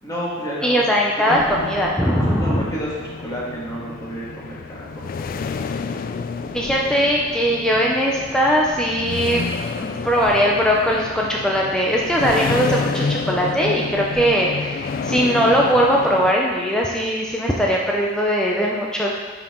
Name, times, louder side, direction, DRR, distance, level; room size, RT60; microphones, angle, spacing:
voice 1, 0.0-0.8 1.2-1.4 2.3-5.1, equal, 20° left, -7 dB, 1.9 m, -31 dB
voice 2, 0.6-2.7 6.5-9.4 9.8-19.1, equal, 5° left, -3 dB, 0.6 m, -20 dB
sound 1, 1.3-16.3, left 4 dB, 50° left, 0.3 m, -29 dB
9.3 x 4.7 x 3.7 m, 1.5 s
head